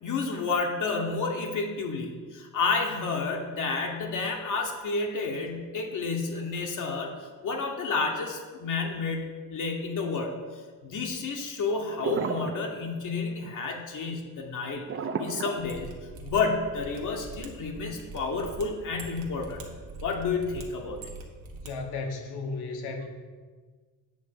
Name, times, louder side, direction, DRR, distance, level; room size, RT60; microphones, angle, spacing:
voice 1, 0.0-10.4 10.8-14.9 15.2-15.9 16.2-19.6 20.0-21.0, left 4 dB, 50° left, 1 dB, 1.0 m, -30 dB
sound 1, 11.9-12.6 12.9-13.2 14.9-16.3, right 5 dB, 35° right, 0.6 m, -32 dB
Mechanisms, 15.6-21.7 22.0-22.1, right 3 dB, 65° right, 1.3 m, -43 dB
voice 2, 21.6-23.1, left 3 dB, 80° left, 3 dB, 1.2 m, -34 dB
8.5 x 3.5 x 6.4 m, 1.5 s
cardioid pair, 125°, 39 cm